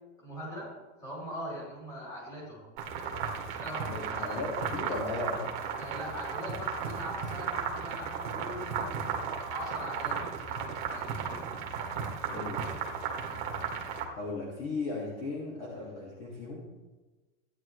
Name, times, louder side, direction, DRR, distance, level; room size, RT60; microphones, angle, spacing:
voice 1, 0.2-2.7 3.5-4.4 4.8-5.0 5.8-8.9 9.4-11.4 13.2-13.4, equal, 10° left, -6 dB, 3.3 m, -42 dB
sound 1, 2.8-14.0, right 6 dB, 35° right, 1.7 m, -35 dB
voice 2, 3.9-5.5 12.3-12.7 14.1-16.8, left 3 dB, 25° left, -4 dB, 1.9 m, -36 dB
15.5 x 10.0 x 3.2 m, 1.2 s
supercardioid pair, 180°, 41 cm